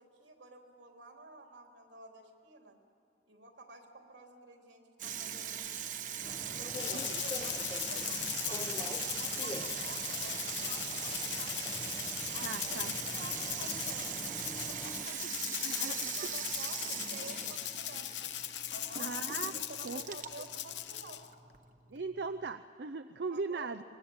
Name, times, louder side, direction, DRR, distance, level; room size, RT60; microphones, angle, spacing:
voice 1, 0.0-2.8 3.3-6.0 6.4-11.7 12.3-14.2 14.7-15.2 15.8-18.1 18.7-19.2 19.5-21.3 23.3-23.7, right 2 dB, 90° right, 2 dB, 3.6 m, -51 dB
Water tap faucet / Sink (filling or washing), 5.0-22.5, right 8 dB, 45° right, 1.1 m, -40 dB
sound 1, 6.2-15.1, left 1 dB, 25° left, 0.9 m, -46 dB
Rattle (instrument), 6.7-21.3, left 12 dB, 80° left, 0.9 m, -39 dB
voice 2, 6.9-7.2 12.4-13.0 15.0-16.4 19.0-19.5 19.8-20.2 21.9-23.8, right 4 dB, 65° right, 9 dB, 0.6 m, -40 dB
24.5 x 20.5 x 8.8 m, 2.5 s
head